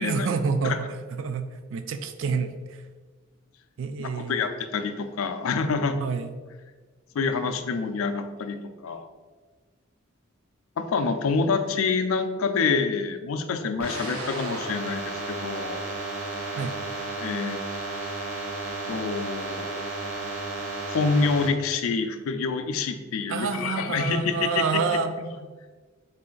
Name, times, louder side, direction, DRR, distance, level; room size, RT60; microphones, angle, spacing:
voice 1, 0.0-2.8 3.8-4.5 6.0-6.3 16.6-16.7 23.3-25.1, right 5 dB, 65° right, 9 dB, 0.3 m, -28 dB
voice 2, 4.0-6.0 7.1-9.1 10.8-15.8 17.2-17.6 18.9-19.7 20.9-24.8 25.2-25.3, left 4 dB, 80° left, 8 dB, 0.4 m, -27 dB
sound 1, 13.8-21.5, right 2 dB, 85° right, 0.8 m, -33 dB
4.1 x 2.5 x 3.8 m, 1.4 s
head